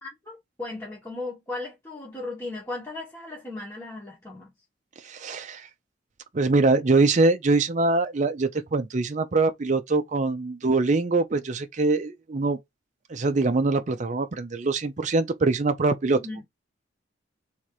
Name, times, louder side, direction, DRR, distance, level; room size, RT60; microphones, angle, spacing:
voice 1, 0.0-4.5 16.1-16.4, left 2 dB, 15° left, 1.3 m, -36 dB
voice 2, 5.0-5.7 6.3-12.6 13.1-16.2, right 3 dB, 40° right, 0.5 m, -23 dB
3.6 x 2.9 x 4.7 m
head